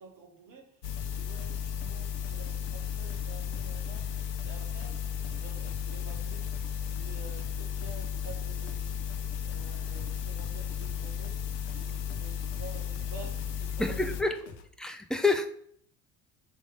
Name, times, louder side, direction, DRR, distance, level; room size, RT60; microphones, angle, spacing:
voice 1, 0.0-4.1 4.4-6.5 6.8-11.4 11.7-14.5, right 4 dB, 45° right, 2 dB, 1.7 m, -50 dB
sound 1, 0.8-14.2, left 8 dB, 90° left, 0.6 m, -34 dB
sound 2, 1.0-14.7, left 6 dB, 55° left, 1.0 m, -51 dB
voice 2, 13.8-14.4 14.8-15.5, left 3 dB, ahead, 5 dB, 0.6 m, -27 dB
5.1 x 3.4 x 5.4 m, 0.63 s
figure-of-eight pair, 65°, 47 cm